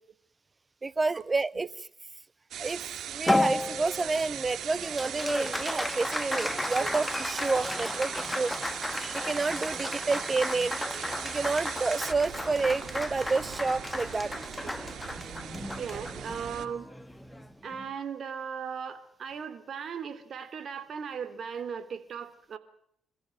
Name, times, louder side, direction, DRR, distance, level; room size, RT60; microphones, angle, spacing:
voice 1, 0.8-1.7 2.6-2.8 3.1-8.5 9.0-10.8 11.2-14.3, right 3 dB, 30° right, 19 dB, 0.9 m, -29 dB
sound 1, 2.5-16.7, right 10 dB, 75° right, 1.6 m, -39 dB
Applause, 3.3-17.9, left 1 dB, 10° left, 1.3 m, -33 dB
voice 2, 15.8-16.9 17.6-22.6, right 7 dB, 55° right, 12 dB, 3.2 m, -37 dB
27.5 x 14.5 x 7.8 m, 0.70 s
cardioid pair, 75°, 0 cm